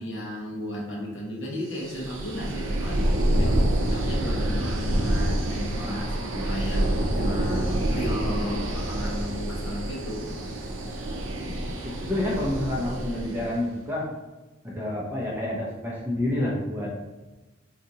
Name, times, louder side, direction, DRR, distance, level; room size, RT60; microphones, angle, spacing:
voice 1, 0.0-3.1 3.4-10.3, equal, 60° left, -2 dB, 0.8 m, -34 dB
sound 1, 1.8-13.6, right 1 dB, 65° right, 0.5 m, -27 dB
voice 2, 11.4-14.1 14.6-16.9, left 1 dB, 10° right, -5 dB, 0.6 m, -29 dB
3.9 x 2.4 x 2.7 m, 1.1 s
head